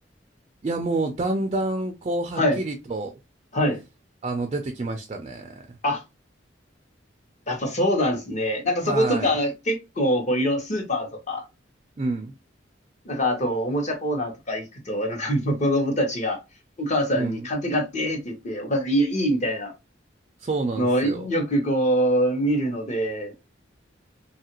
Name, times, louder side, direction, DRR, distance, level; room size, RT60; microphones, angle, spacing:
voice 1, 0.6-3.1 4.2-5.6 8.8-9.3 12.0-12.3 17.2-17.5 20.4-21.3, right 2 dB, 35° right, 0.3 m, -28 dB
voice 2, 7.5-11.4 13.0-16.4 16.8-19.7 20.8-23.3, equal, 40° left, 0.9 m, -24 dB
2.8 x 2.4 x 2.9 m
head